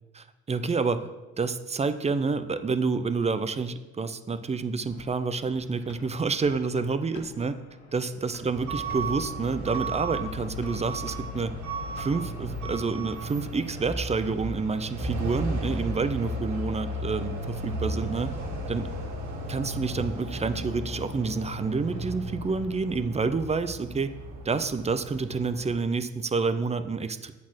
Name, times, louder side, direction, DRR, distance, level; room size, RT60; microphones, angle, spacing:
voice 1, 0.1-1.1 1.4-7.6 7.9-11.5 12.0-18.4 18.7-18.9 19.5-24.1 24.4-27.3, right 4 dB, 20° right, 12 dB, 0.5 m, -28 dB
sound 1, 4.9-12.5, left 2 dB, 70° left, 1.5 m, -51 dB
Truck / Alarm, 8.5-25.8, right 1 dB, 80° right, 1.7 m, -34 dB
8.3 x 4.2 x 6.2 m, 1.1 s
cardioid pair, 90°, 30 cm